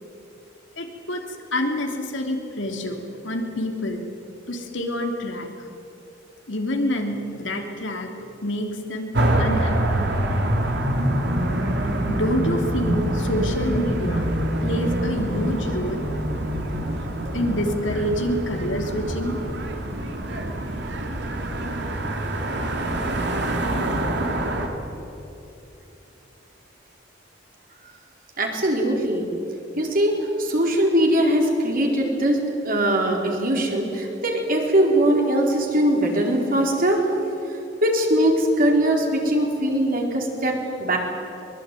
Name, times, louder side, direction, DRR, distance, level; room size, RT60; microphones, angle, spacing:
voice 1, 0.8-1.2 1.5-3.0 3.2-4.0 4.5-5.7 6.5-9.1 9.4-10.1 12.1-14.3 14.6-16.3 17.3-19.4, left 1 dB, 80° left, 3 dB, 3.2 m, -27 dB
sound 1, 9.1-24.7, right 1 dB, 65° right, 3.0 m, -25 dB
voice 2, 28.4-29.3 29.8-32.4 32.6-37.0 37.8-41.0, right 1 dB, 50° right, 1 dB, 4.4 m, -21 dB
23.0 x 22.0 x 9.3 m, 2.9 s
head